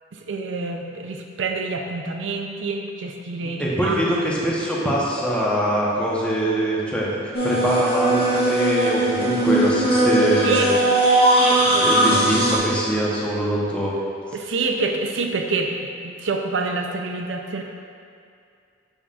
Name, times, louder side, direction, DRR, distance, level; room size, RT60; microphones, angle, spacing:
voice 1, 0.1-4.1 10.4-10.7 11.4-12.4 14.3-17.6, right 3 dB, 70° right, 3 dB, 0.6 m, -27 dB
voice 2, 3.6-7.1 7.4-10.8 11.8-14.0, equal, 5° left, -6 dB, 0.9 m, -23 dB
sound 1, 7.3-12.6, right 1 dB, 30° left, 1.3 m, -19 dB
7.0 x 5.5 x 2.5 m, 2.4 s
head